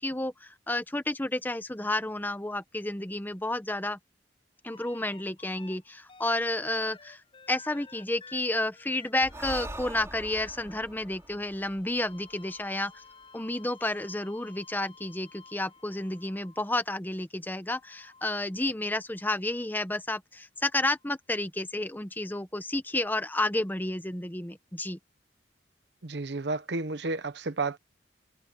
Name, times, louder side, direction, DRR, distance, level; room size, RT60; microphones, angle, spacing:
voice 1, 0.0-4.0 4.6-7.2 7.5-13.0 13.3-25.0, left 1 dB, 10° left, 1.0 m, -31 dB
sound 1, 4.7-5.8 6.1-16.9 17.7-19.3 21.0-21.1, left 5 dB, 30° left, 7.5 m, -54 dB
Breathing, 9.2-12.8, right 1 dB, 15° right, 4.0 m, -43 dB
voice 2, 26.0-27.8, right 3 dB, 70° right, 1.0 m, -31 dB
head